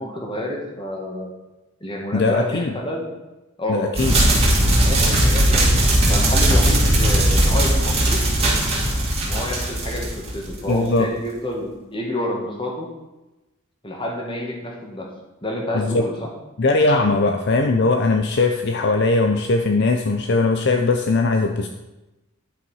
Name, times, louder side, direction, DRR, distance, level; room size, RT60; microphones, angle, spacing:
voice 1, 0.0-1.3 1.8-3.1 3.6-3.9 4.7-8.2 9.2-12.9 13.8-15.1 15.4-16.3, equal, 25° left, 0 dB, 1.8 m, -29 dB
voice 2, 2.1-2.7 3.7-4.1 10.7-11.1 15.7-16.0 16.6-21.7, left 3 dB, 50° left, 5 dB, 0.5 m, -19 dB
sound 1, 4.0-10.7, right 1 dB, 30° right, 2.5 m, -18 dB
10.0 x 5.7 x 5.5 m, 1.0 s
head